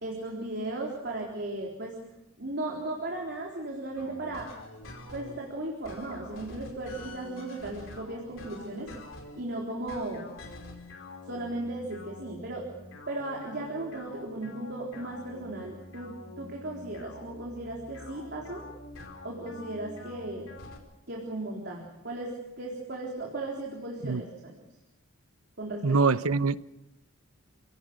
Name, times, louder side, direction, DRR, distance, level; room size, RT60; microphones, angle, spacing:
voice 1, 0.0-2.0 2.4-4.5 5.1-8.9 9.4-10.3 11.3-12.7 13.1-18.7 19.2-20.5 21.1-24.5 25.6-26.1, right 2 dB, 50° right, 3.9 m, -36 dB
sound 1, 4.0-5.4 5.8-9.4 9.9-20.8, left 2 dB, 60° left, 4.8 m, -46 dB
voice 2, 25.8-26.6, right 4 dB, 85° right, 0.9 m, -24 dB
29.5 x 18.0 x 6.4 m
head